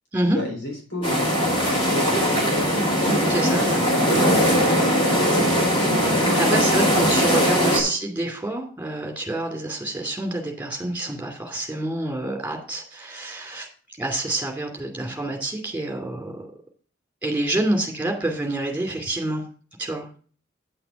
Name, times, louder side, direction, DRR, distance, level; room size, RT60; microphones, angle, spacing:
voice 1, 0.3-2.7 3.5-6.5, left 2 dB, 80° left, -2 dB, 3.9 m, -33 dB
sound 1, 1.0-7.8, equal, 25° left, 3.5 m, -20 dB
voice 2, 3.3-3.8 6.2-13.7 14.0-16.5 17.2-19.4 19.8-20.0, right 1 dB, 10° right, 2 dB, 2.6 m, -27 dB
9.5 x 5.9 x 5.3 m, 0.42 s
head